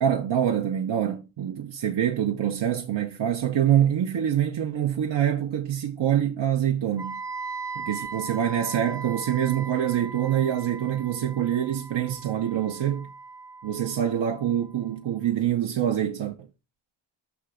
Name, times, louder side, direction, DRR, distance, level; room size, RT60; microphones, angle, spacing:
voice 1, 0.0-7.2 7.8-13.1 13.6-16.3, right 10 dB, 60° right, 0.9 m, -25 dB
Wind instrument woodwind instrument, 7.0-14.9, right 4 dB, 5° right, 0.4 m, -39 dB
5.9 x 3.6 x 4.9 m
supercardioid pair, 50°, 50 cm